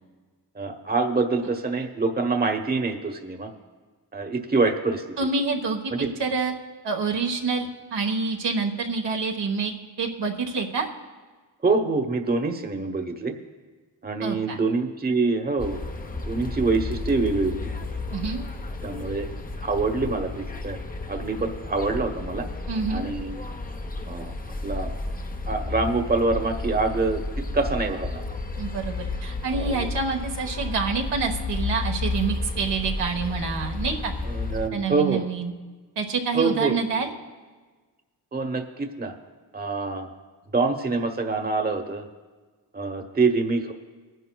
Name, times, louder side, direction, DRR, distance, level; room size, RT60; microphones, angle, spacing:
voice 1, 0.6-3.5 4.1-5.0 6.0-6.1 11.6-13.3 14.0-15.8 16.3-17.6 18.8-19.3 19.6-20.8 21.1-22.5 22.9-23.3 24.1-24.3 24.6-24.9 25.5-27.2 27.5-28.2 29.5-29.9 34.3-35.2 36.3-36.8 38.3-39.1 39.5-40.1 40.5-42.0 42.7-43.7, right 3 dB, 20° right, 5 dB, 1.0 m, -25 dB
voice 2, 5.2-6.5 6.8-9.7 10.0-10.9 14.2-14.6 18.1-18.4 22.7-23.0 28.6-34.1 34.7-35.5 36.0-37.1, right 4 dB, 75° right, 2 dB, 1.3 m, -27 dB
sound 1, 15.6-34.7, left 3 dB, 20° left, 0.7 m, -32 dB
19.0 x 10.5 x 2.3 m, 1.4 s
cardioid pair, 55°, 42 cm